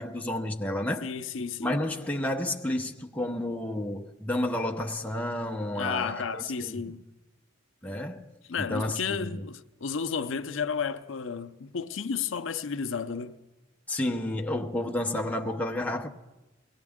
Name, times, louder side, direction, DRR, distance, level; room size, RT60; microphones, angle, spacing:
voice 1, 0.0-1.1 1.6-7.0 7.8-8.2 8.6-9.4 13.9-16.1, left 1 dB, 5° left, 0.8 m, -31 dB
voice 2, 1.0-1.8 5.7-7.0 8.5-13.4, left 6 dB, 70° left, 0.6 m, -32 dB
22.0 x 18.0 x 3.6 m
head